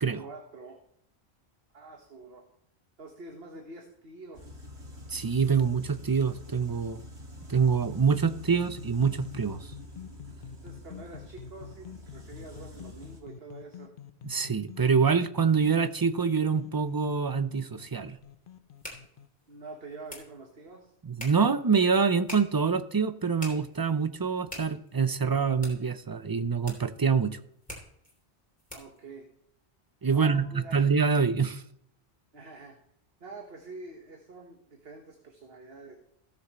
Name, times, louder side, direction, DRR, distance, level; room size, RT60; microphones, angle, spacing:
voice 1, 0.2-0.8 1.7-2.5 3.0-4.7 10.6-13.9 19.5-20.9 28.7-29.3 30.1-30.8 32.3-32.7 33.2-36.0, right 3 dB, 65° right, 2 dB, 1.6 m, -46 dB
sound 1, 4.3-13.2, left 1 dB, 85° right, 2.5 m, -47 dB
voice 2, 5.1-7.0 7.5-9.6 14.2-18.2 21.0-27.4 30.0-31.6, right 5 dB, 30° right, 11 dB, 0.4 m, -25 dB
sound 2, 7.8-19.3, left 8 dB, 55° left, 0.8 m, -47 dB
sound 3, 17.8-29.1, left 1 dB, 5° left, 3.0 m, -48 dB
16.5 x 7.1 x 3.1 m, 0.72 s
omnidirectional pair, 1.1 m